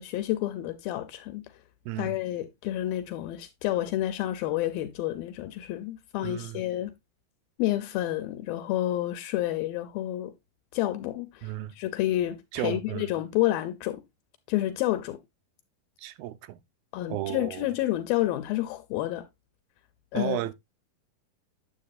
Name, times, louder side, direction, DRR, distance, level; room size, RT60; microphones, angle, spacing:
voice 1, 0.0-1.4 2.0-6.9 7.6-10.3 10.7-12.4 12.6-14.0 14.5-15.2 16.9-19.2 20.1-20.4, left 14 dB, 85° left, 2.5 m, -29 dB
voice 2, 1.9-2.2 6.2-6.6 11.4-11.7 12.5-13.2 16.0-16.6 17.1-17.7 20.1-20.5, right 15 dB, 90° right, 2.4 m, -34 dB
9.3 x 7.4 x 2.4 m
omnidirectional pair, 4.1 m